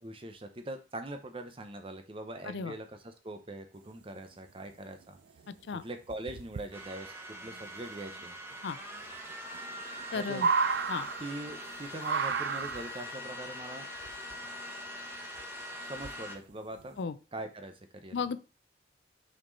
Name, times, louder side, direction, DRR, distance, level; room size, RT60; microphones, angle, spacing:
voice 1, 0.0-5.2 5.8-8.3 10.1-10.4 11.2-13.9 15.8-17.0 17.3-18.3, right 1 dB, 30° right, 7 dB, 0.8 m, -42 dB
sound 1, 5.0-5.1 5.4-5.7 6.1-6.7 8.2-8.3 8.5-8.6 9.1-9.2 9.5-11.7 12.0-13.1 14.0-14.7 15.4-15.5 16.0-16.4 16.8-17.0, right 5 dB, 70° right, 0.4 m, -32 dB
sound 2, 6.7-16.4, equal, 15° right, 1.1 m, -43 dB
voice 2, 10.1-10.5 10.9-11.1 17.0-17.2 18.1-18.4, left 5 dB, 75° left, 15 dB, 0.4 m, -34 dB
6.1 x 4.4 x 4.0 m, 0.33 s
head